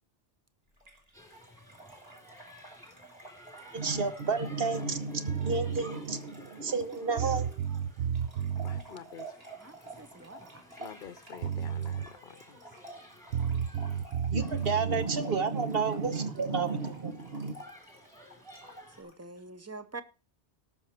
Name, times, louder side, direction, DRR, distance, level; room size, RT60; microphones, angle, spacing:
Trickle dribble / Fill (with liquid), 0.8-19.2, right 2 dB, 35° right, 3.3 m, -51 dB
sound 1, 1.1-19.0, equal, 5° left, 3.1 m, -55 dB
voice 1, 3.7-7.6 14.3-17.6, right 4 dB, 60° right, 1.3 m, -31 dB
sound 2, 5.3-5.8 6.8-6.9 7.2-8.8 11.1-11.2 11.4-12.1 13.3-15.1, right 8 dB, 80° right, 1.1 m, -32 dB
voice 2, 8.6-9.4 10.6-12.8, left 8 dB, 55° left, 0.8 m, -48 dB
voice 3, 9.6-10.6 19.0-20.0, right 3 dB, 15° right, 0.6 m, -45 dB
18.0 x 6.3 x 4.4 m
omnidirectional pair, 1.1 m